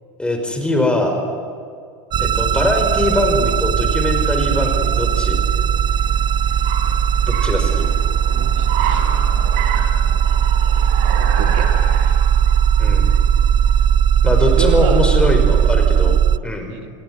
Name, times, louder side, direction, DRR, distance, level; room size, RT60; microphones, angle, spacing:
voice 1, 0.2-1.2 2.2-5.4 7.2-7.9 12.8-13.1 14.2-16.7, left 1 dB, 5° left, 4 dB, 5.5 m, -21 dB
sound 1, 2.1-16.4, right 8 dB, 30° right, 0.7 m, -17 dB
Car, 3.4-15.9, right 7 dB, 60° right, 6.1 m, -31 dB
voice 2, 8.3-9.0 11.2-11.7 14.4-15.0 16.7-16.9, right 8 dB, 75° right, 6 dB, 3.1 m, -29 dB
28.0 x 21.5 x 9.8 m, 2.3 s
supercardioid pair, 120°, 16 cm